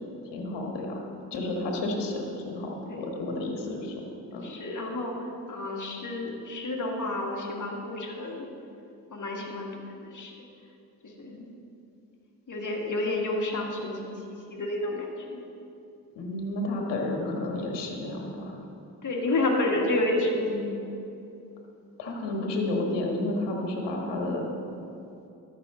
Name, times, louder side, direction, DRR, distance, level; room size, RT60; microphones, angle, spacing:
voice 1, 0.3-1.0 1.3-3.9 4.3-4.4 16.1-18.6 22.0-24.5, left 2 dB, 75° left, 1 dB, 1.5 m, -31 dB
voice 2, 4.4-8.4 9.1-10.3 11.0-11.5 12.5-15.4 19.0-20.7, left 2 dB, 45° left, 0 dB, 1.8 m, -30 dB
12.5 x 6.3 x 3.8 m, 2.7 s
supercardioid pair, 55°, 42 cm